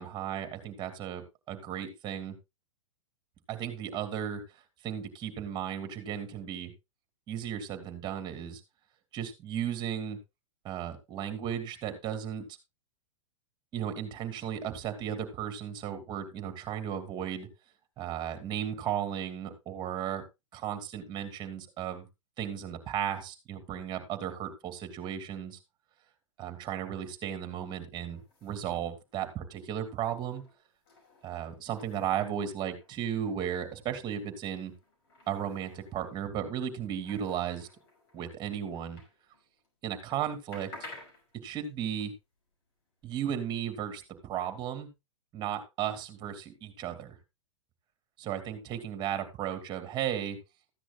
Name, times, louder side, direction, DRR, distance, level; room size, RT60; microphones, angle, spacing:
voice 1, 0.0-2.4 3.5-6.7 7.3-8.6 9.1-10.2 10.6-12.4 13.7-17.5 18.0-20.2 20.5-22.0 22.4-25.6 26.4-30.4 31.2-34.7 35.3-37.7 38.1-39.0 39.8-40.7 41.4-42.1 43.0-44.9 45.3-47.2 48.2-50.4, right 9 dB, 25° right, 8 dB, 2.7 m, -35 dB
sound 1, 28.0-39.7 40.0-44.1, left 2 dB, 55° left, 5.6 m, -55 dB
14.5 x 10.0 x 2.4 m, 0.23 s
hypercardioid pair, 125°, 16 cm